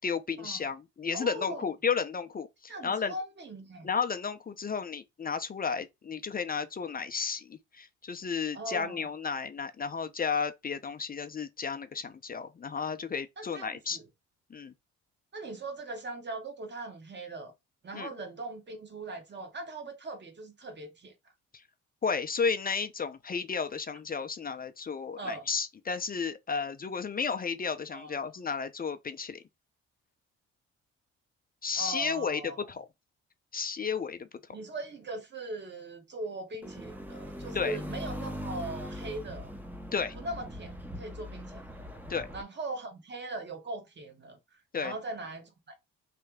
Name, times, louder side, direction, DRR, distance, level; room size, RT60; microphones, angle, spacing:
voice 1, 0.0-3.1 3.8-14.0 14.5-14.7 17.9-18.1 21.5-21.6 22.0-29.4 31.6-32.4 32.7-32.9 33.5-34.3 37.5-37.8 39.9-40.1 42.1-42.3 44.7-44.9, left 5 dB, 30° left, 0.5 m, -33 dB
voice 2, 1.1-1.7 2.7-3.9 8.5-9.0 13.4-14.1 15.3-17.5 17.8-21.1 25.2-25.5 27.9-28.2 31.8-32.7 34.5-39.5 40.1-41.6 42.3-45.7, right 2 dB, 35° right, 1.4 m, -40 dB
sound 1, 36.6-42.4, equal, 5° right, 0.8 m, -41 dB
3.3 x 2.9 x 3.5 m
cardioid pair, 90°, 30 cm